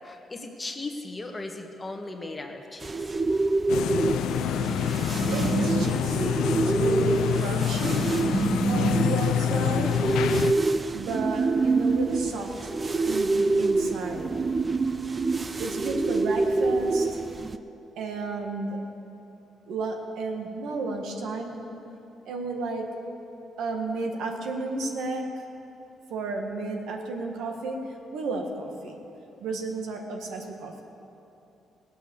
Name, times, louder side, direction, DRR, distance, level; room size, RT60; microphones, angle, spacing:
voice 1, 0.0-2.9, left 2 dB, 25° left, 3 dB, 1.5 m, -37 dB
sound 1, 2.8-17.6, right 3 dB, 30° right, 0.5 m, -26 dB
sound 2, 3.7-10.5, left 9 dB, 85° left, 0.5 m, -27 dB
voice 2, 4.9-14.5 15.5-17.2 18.0-18.8 19.7-21.7 22.2-22.9 23.6-25.4 26.1-27.8 28.1-29.0 29.4-30.8, right 3 dB, 80° right, 2 dB, 1.7 m, -33 dB
17.5 x 8.3 x 7.0 m, 2.9 s
cardioid pair, 90°, 0 cm